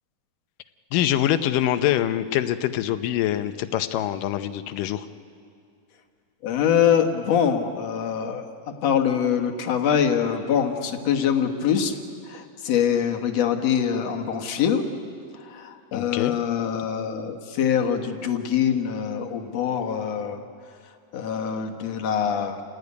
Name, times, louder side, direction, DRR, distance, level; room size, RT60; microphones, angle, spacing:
voice 1, 0.9-5.1 15.9-16.4, left 12 dB, 75° left, 11 dB, 2.4 m, -24 dB
voice 2, 6.4-8.4 8.8-12.0 12.3-14.9 15.4-20.4 21.1-22.6, left 8 dB, 55° left, 5 dB, 2.2 m, -24 dB
28.0 x 17.0 x 9.6 m, 2.4 s
omnidirectional pair, 4.0 m